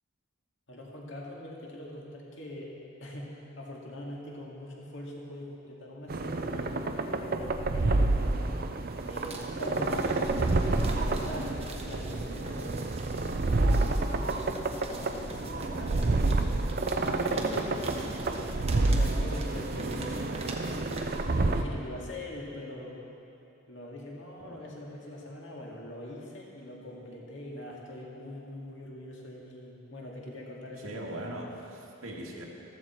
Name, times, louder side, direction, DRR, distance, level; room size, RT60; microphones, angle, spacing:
voice 1, 0.7-2.7 3.0-8.5 9.0-10.3 10.7-12.9 13.3-16.1 17.1-18.0 18.8-23.0 23.7-31.2, left 1 dB, 60° left, -2 dB, 2.2 m, -43 dB
sound 1, 6.1-21.6, right 2 dB, 45° right, 0.5 m, -29 dB
sound 2, 8.8-21.7, right 2 dB, 30° right, 1.1 m, -43 dB
voice 2, 30.8-32.4, right 1 dB, 85° right, -2 dB, 2.0 m, -40 dB
14.5 x 13.5 x 4.5 m, 2.7 s
head